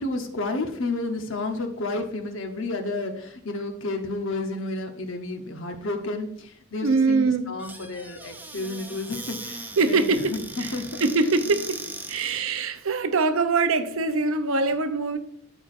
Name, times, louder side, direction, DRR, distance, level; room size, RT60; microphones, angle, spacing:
voice 1, 0.0-11.0, left 2 dB, 60° left, 1.0 m, -31 dB
voice 2, 6.8-7.6 9.8-10.7 11.0-15.2, right 3 dB, 70° right, 0.6 m, -23 dB
Squeak / Cupboard open or close, 7.6-12.5, right 2 dB, 10° right, 0.4 m, -39 dB
13.0 x 4.5 x 2.6 m
head